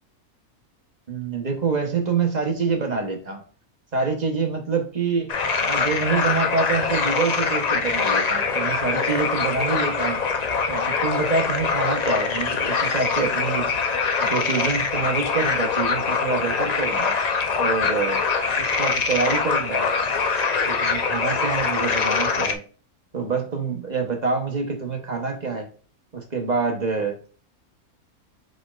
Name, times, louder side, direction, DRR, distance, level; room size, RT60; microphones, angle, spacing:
voice 1, 1.1-3.4 3.9-5.3 5.6-10.2 10.7-13.7 14.2-17.2 17.6-18.2 18.6-19.9 20.7-22.6 23.1-25.7 26.1-27.2, right 4 dB, 35° right, 3 dB, 1.0 m, -26 dB
sound 1, 5.3-22.5, left 5 dB, 60° left, 0.4 m, -23 dB
4.9 x 4.3 x 2.4 m, 0.39 s
omnidirectional pair, 1.5 m